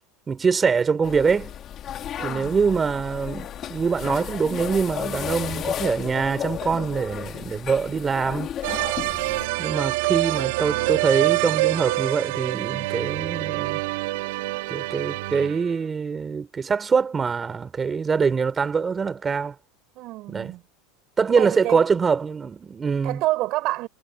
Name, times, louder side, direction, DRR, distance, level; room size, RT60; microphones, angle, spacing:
voice 1, 0.3-1.5 2.2-8.5 9.6-13.8 14.7-19.5 20.3-20.5 21.2-23.2, right 5 dB, 20° right, 4.1 m, -24 dB
sound 1, 1.0-9.5, left 10 dB, 35° left, 2.0 m, -33 dB
voice 2, 2.2-2.6 9.0-9.3 19.9-20.6 21.4-21.9 23.0-23.9, right 18 dB, 50° right, 5.5 m, -28 dB
sound 2, 8.6-15.8, right 22 dB, 75° right, 2.4 m, -26 dB
supercardioid pair, 140°, 0 cm